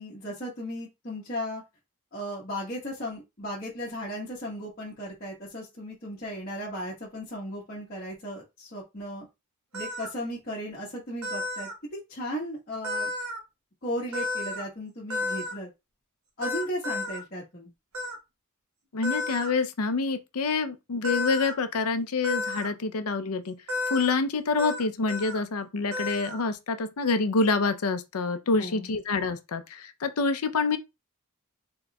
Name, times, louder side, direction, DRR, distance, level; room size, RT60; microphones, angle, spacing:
voice 1, 0.0-1.6 2.1-9.3 9.7-13.1 13.8-15.7 16.4-17.7 28.5-28.9, equal, 40° left, 1.4 m, -36 dB
sound 1, 9.7-10.1 11.2-11.7 12.8-13.4 14.1-14.6 15.1-15.5 16.4-17.2 17.9-18.2 19.0-19.5 21.0-21.5 22.2-22.7 23.7-24.1 24.6-24.8 25.1-25.4 25.9-26.4, left 2 dB, 85° right, 1.3 m, -32 dB
voice 2, 18.9-23.5 23.9-30.8, left 4 dB, 80° left, 0.6 m, -27 dB
4.1 x 3.8 x 2.3 m
head